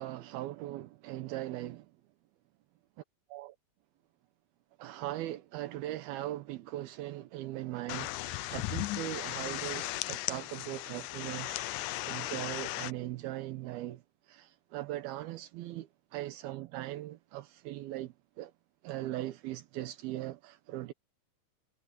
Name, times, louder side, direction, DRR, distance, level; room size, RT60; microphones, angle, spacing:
voice 1, 0.0-1.9 3.3-3.6 4.8-11.8 12.1-18.5 18.8-20.9, right 15 dB, 85° right, 2.9 m, -40 dB
sound 1, 7.9-12.9, left 18 dB, 80° left, 1.8 m, -36 dB
omnidirectional pair, 4.3 m